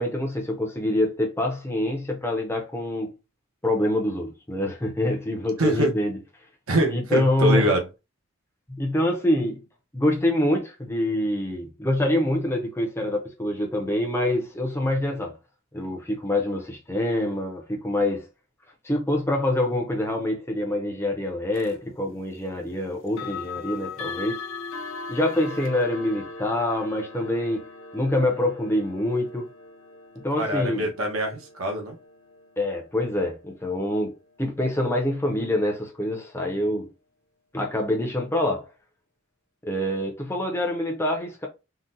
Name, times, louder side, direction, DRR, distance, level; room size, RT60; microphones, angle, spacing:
voice 1, 0.0-3.1 3.6-6.2 6.9-7.7 8.7-9.7 9.9-15.4 15.7-18.2 18.8-24.4 25.1-27.7 27.9-29.5 30.2-30.9 32.6-34.1 34.4-36.9 37.5-38.7 39.6-41.5, left 1 dB, 10° left, 0.5 m, -25 dB
voice 2, 5.6-5.9 6.7-7.9 30.4-32.0, right 1 dB, 85° right, 0.8 m, -24 dB
sound 1, 21.5-21.8 23.1-33.9, left 4 dB, 70° left, 0.5 m, -40 dB
3.7 x 2.1 x 2.6 m
head